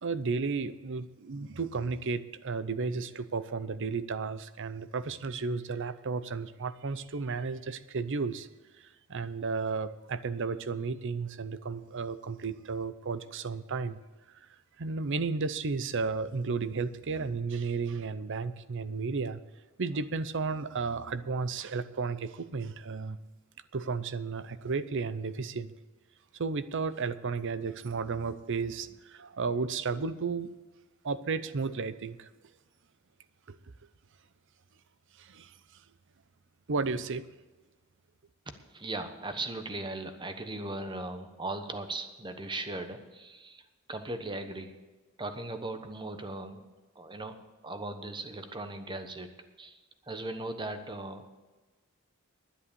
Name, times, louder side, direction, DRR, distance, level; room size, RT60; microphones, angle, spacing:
voice 1, 0.0-8.5 8.8-14.0 14.8-19.4 19.8-23.2 23.7-25.7 26.3-30.5 31.0-32.3 33.5-33.6 35.2-35.5 36.7-37.3, right 4 dB, 60° right, 14 dB, 0.7 m, -33 dB
voice 2, 38.5-44.8 45.2-46.6 46.9-47.3 47.6-51.3, right 2 dB, 20° right, 8 dB, 1.1 m, -38 dB
11.0 x 10.0 x 6.9 m, 1.2 s
head